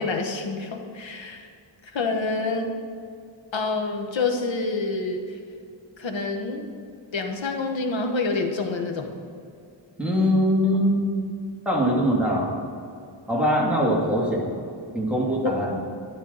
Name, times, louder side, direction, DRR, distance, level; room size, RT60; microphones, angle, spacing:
voice 1, 0.0-1.5 1.9-2.7 3.5-5.4 6.0-6.7 7.1-9.2, left 3 dB, 75° left, 4 dB, 1.3 m, -27 dB
voice 2, 10.0-11.0 11.7-12.5 13.3-14.6 14.9-15.8, equal, ahead, -5 dB, 2.6 m, -22 dB
12.0 x 10.5 x 4.1 m, 2.4 s
wide cardioid pair, 125°, 46 cm